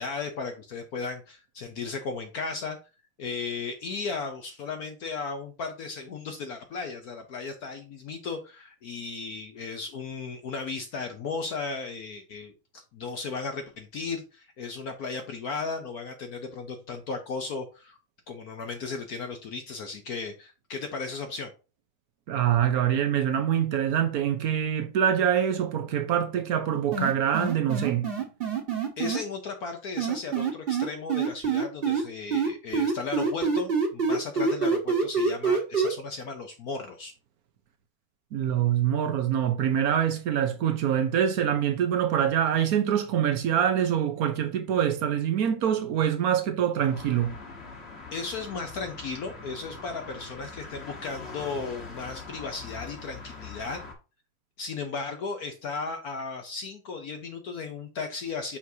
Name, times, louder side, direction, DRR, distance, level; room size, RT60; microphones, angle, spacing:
voice 1, 0.0-2.8 3.2-18.0 18.3-21.5 29.0-37.1 48.1-53.8 54.6-58.6, left 4 dB, 65° left, 0.9 m, -35 dB
voice 2, 22.3-28.1 38.3-47.4, right 9 dB, 75° right, 0.8 m, -25 dB
sound 1, 26.9-29.2 30.0-32.0 32.3-35.9, right 5 dB, 30° right, 1.2 m, -25 dB
sound 2, 46.9-53.9, left 4 dB, 35° left, 1.3 m, -42 dB
6.1 x 5.8 x 2.7 m
omnidirectional pair, 2.4 m